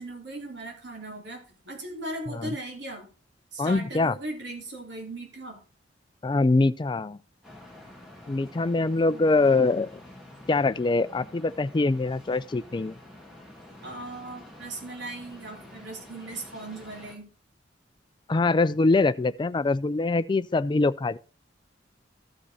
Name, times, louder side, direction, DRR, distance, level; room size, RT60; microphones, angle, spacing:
voice 1, 0.0-3.1 3.5-5.6 9.1-9.2 13.8-17.3, right 2 dB, 70° right, 3.0 m, -38 dB
voice 2, 3.6-4.1 6.2-7.2 8.3-9.9 10.5-12.9 18.3-21.2, left 3 dB, 25° left, 0.4 m, -23 dB
sound 1, 7.4-17.2, left 1 dB, 5° right, 2.1 m, -48 dB
14.5 x 5.2 x 4.1 m
head